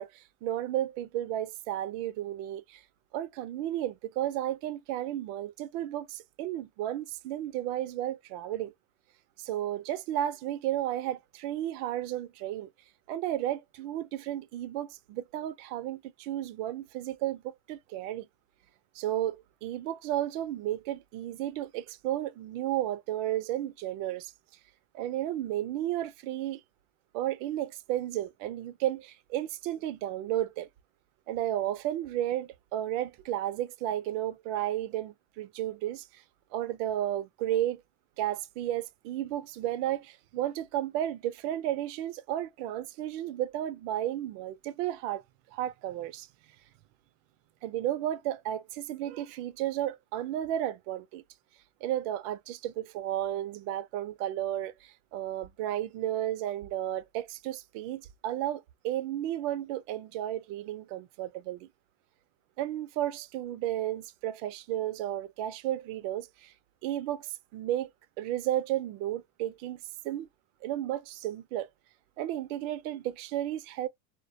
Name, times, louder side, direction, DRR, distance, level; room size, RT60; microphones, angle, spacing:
voice 1, 0.0-2.8 3.1-8.7 9.4-12.7 13.1-18.3 18.9-19.4 19.6-24.3 24.9-26.6 27.1-30.7 31.3-36.2 36.5-37.8 38.2-45.2 45.5-46.3 47.6-51.2 51.8-61.7 62.6-66.5 66.8-67.9 68.2-70.3 70.6-71.7 72.2-73.9, right 12 dB, 55° right, 0.5 m, -33 dB
2.2 x 2.2 x 2.6 m
supercardioid pair, 125°, 45 cm